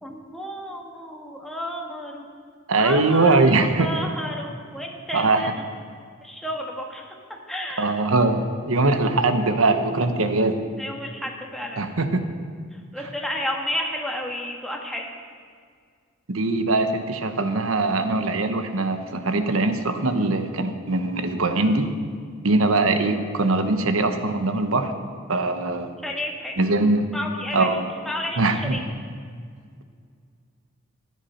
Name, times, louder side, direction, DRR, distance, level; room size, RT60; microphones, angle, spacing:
voice 1, 0.0-2.2 2.8-5.5 6.2-7.1 7.5-7.9 10.8-11.8 12.9-15.1 26.0-26.6 27.1-27.7 28.0-28.4 28.7-28.8, equal, ahead, -1 dB, 1.6 m, -31 dB
voice 2, 2.7-3.9 5.1-5.5 7.8-10.5 11.8-12.2 13.0-13.1 16.3-21.9 22.4-24.9 25.3-25.9 26.6-27.0 27.5-27.9 28.4-28.8, right 2 dB, 80° right, 8 dB, 1.0 m, -21 dB
14.0 x 9.8 x 5.7 m, 2.1 s
head